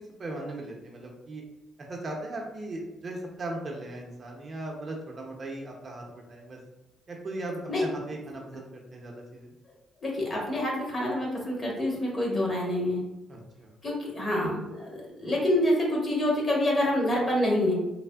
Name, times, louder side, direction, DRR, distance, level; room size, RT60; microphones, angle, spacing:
voice 1, 0.2-1.4 1.8-6.6 7.1-9.5 13.3-13.7, right 2 dB, 40° right, 0 dB, 0.5 m, -38 dB
voice 2, 10.0-13.0 13.8-17.7, left 1 dB, 35° left, -3 dB, 1.0 m, -27 dB
3.3 x 2.0 x 2.2 m, 0.98 s
cardioid pair, 90°, 0 cm